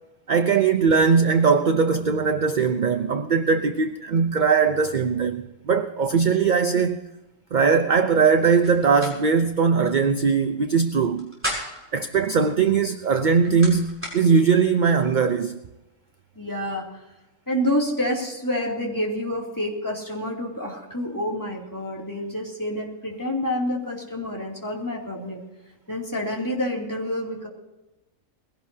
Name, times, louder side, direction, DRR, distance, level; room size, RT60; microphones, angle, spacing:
voice 1, 0.3-7.0 7.5-11.3 11.9-15.6, right 5 dB, 45° right, 0.7 m, -20 dB
sound 1, 8.6-9.1 9.5-9.6 11.0-11.9 13.0-14.2, equal, 10° right, 6.0 m, -33 dB
voice 2, 16.3-17.0 17.5-25.4 25.9-27.5, left 1 dB, 15° left, 2.9 m, -28 dB
21.0 x 17.0 x 2.8 m
omnidirectional pair, 1.4 m